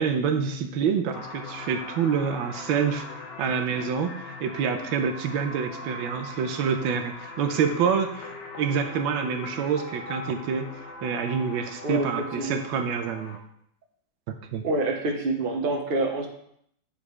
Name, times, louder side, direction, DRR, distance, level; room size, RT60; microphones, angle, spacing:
voice 1, 0.0-8.3 8.6-10.7 11.0-13.4 14.3-14.6, right 6 dB, 85° right, 6 dB, 1.4 m, -27 dB
sound 1, 1.1-13.4, left 3 dB, 70° left, 1.4 m, -41 dB
voice 2, 14.6-16.3, right 2 dB, 40° right, 2 dB, 0.8 m, -26 dB
8.4 x 5.2 x 3.2 m, 0.70 s
omnidirectional pair, 2.1 m